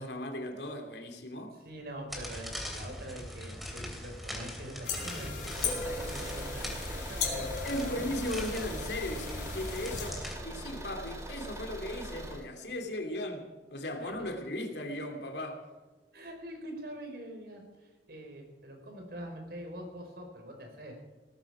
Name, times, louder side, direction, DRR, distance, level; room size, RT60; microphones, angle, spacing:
voice 1, 0.0-1.6 7.6-15.6, left 1 dB, 75° left, 2.6 m, -37 dB
voice 2, 1.5-8.0 9.9-10.0 14.0-14.1 16.1-21.0, right 1 dB, 60° right, 4.7 m, -44 dB
sound 1, 2.1-10.4, equal, ahead, 3.0 m, -42 dB
sound 2, 4.8-10.1, left 5 dB, 50° left, 3.9 m, -37 dB
Car / Engine, 5.4-12.5, right 1 dB, 15° right, 2.2 m, -42 dB
18.0 x 14.0 x 4.9 m
head